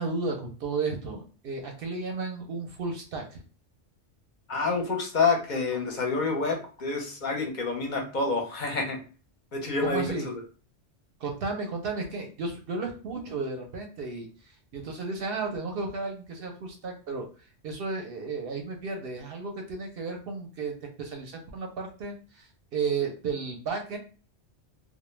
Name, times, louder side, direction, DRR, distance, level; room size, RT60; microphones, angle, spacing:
voice 1, 0.0-3.4 9.8-10.3 11.2-17.3 17.6-24.0, right 4 dB, 65° right, 2 dB, 0.7 m, -33 dB
voice 2, 4.5-9.0 9.5-10.4, left 4 dB, 50° left, 1 dB, 0.6 m, -28 dB
2.1 x 2.1 x 3.1 m, 0.37 s
omnidirectional pair, 1.2 m